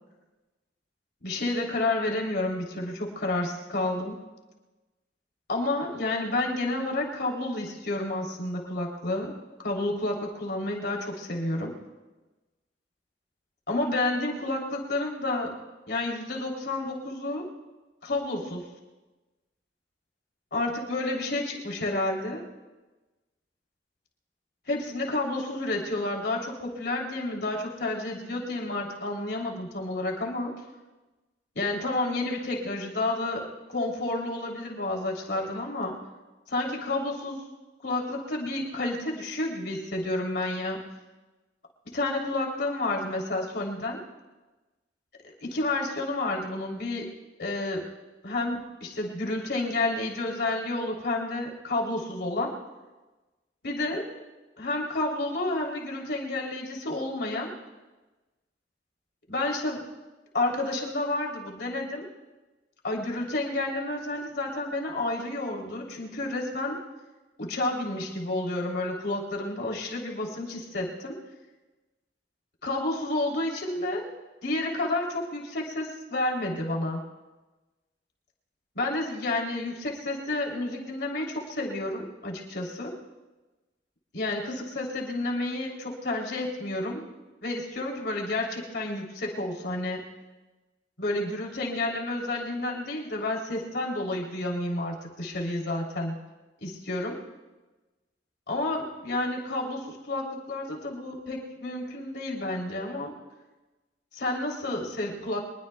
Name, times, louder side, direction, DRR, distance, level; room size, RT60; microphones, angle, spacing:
voice 1, 1.2-4.2 5.5-9.3 9.6-11.7 13.7-15.5 15.9-17.5 18.0-18.6 20.5-22.4 24.7-30.6 31.5-36.0 36.5-37.4 37.8-40.8 41.9-44.0 45.4-47.1 47.4-47.9 48.2-52.5 53.6-54.1 54.6-57.5 59.3-59.8 60.3-62.1 62.8-66.8 67.4-71.2 72.6-74.1 74.4-77.0 78.7-82.9 84.1-87.0 87.4-90.0 91.0-96.2 96.6-97.2 98.5-103.1 104.1-105.4, left 2 dB, 65° left, -1 dB, 3.3 m, -30 dB
25.0 x 21.0 x 2.3 m, 1.2 s
head